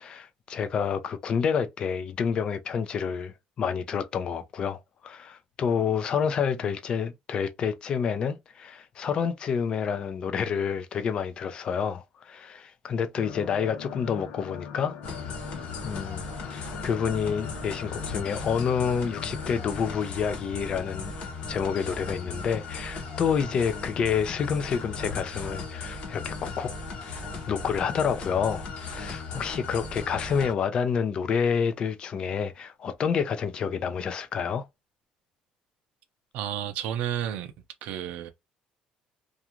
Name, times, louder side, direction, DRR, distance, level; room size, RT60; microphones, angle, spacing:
voice 1, 0.0-15.0 15.8-16.2 16.5-21.2 21.5-26.7 27.5-34.7, left 6 dB, 40° left, 0.5 m, -28 dB
sound 1, 13.2-20.1, left 7 dB, 90° left, 0.6 m, -42 dB
sound 2, 15.0-30.5, left 4 dB, 55° left, 0.9 m, -37 dB
voice 2, 36.3-37.5 37.8-38.3, right 10 dB, 75° right, 0.5 m, -31 dB
2.4 x 2.4 x 2.9 m
cardioid pair, 140°, 2 cm